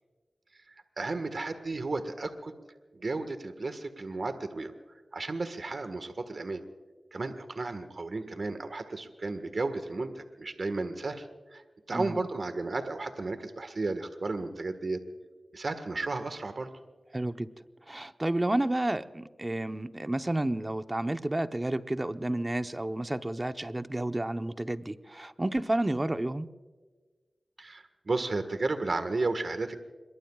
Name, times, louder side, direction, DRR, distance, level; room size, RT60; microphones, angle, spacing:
voice 1, 1.0-2.5 2.9-4.7 5.1-6.6 7.1-11.3 11.5-11.6 11.9-15.0 15.5-16.7 27.6-29.8, right 3 dB, 60° right, 9 dB, 1.5 m, -33 dB
voice 2, 17.1-17.5 17.9-26.5, right 1 dB, 25° right, 9 dB, 0.9 m, -31 dB
26.5 x 22.5 x 2.4 m, 1.4 s
cardioid pair, 50°, 0 cm